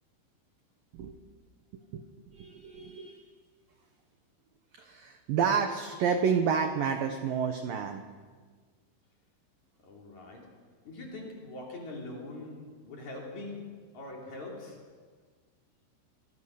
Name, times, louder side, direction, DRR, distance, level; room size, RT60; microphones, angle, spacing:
voice 1, 1.7-2.0 2.3-3.3 4.8-8.0, right 6 dB, 75° right, 6 dB, 2.1 m, -30 dB
voice 2, 9.8-10.6 10.8-14.9, left 2 dB, 40° left, -1 dB, 4.1 m, -43 dB
25.5 x 17.0 x 6.5 m, 1.5 s
omnidirectional pair, 5.6 m